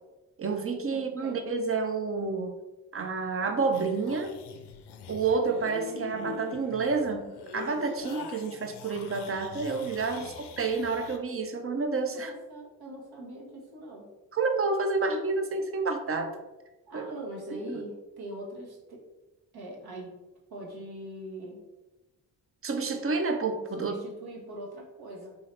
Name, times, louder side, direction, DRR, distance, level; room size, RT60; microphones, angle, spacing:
voice 1, 0.4-2.6 2.9-4.4 5.1-12.3 14.3-16.4 16.9-17.1 17.7-17.8 22.6-23.9, right 4 dB, 30° right, 6 dB, 0.6 m, -29 dB
voice 2, 0.9-1.4 10.1-10.3 12.1-14.1 16.8-19.0 19.5-20.1 20.5-21.6 23.8-25.4, right 1 dB, 60° right, -2 dB, 1.3 m, -42 dB
sound 1, 3.7-11.2, left 6 dB, 65° left, 0.5 m, -43 dB
3.8 x 2.7 x 3.2 m, 1.1 s
hypercardioid pair, 40°, 43 cm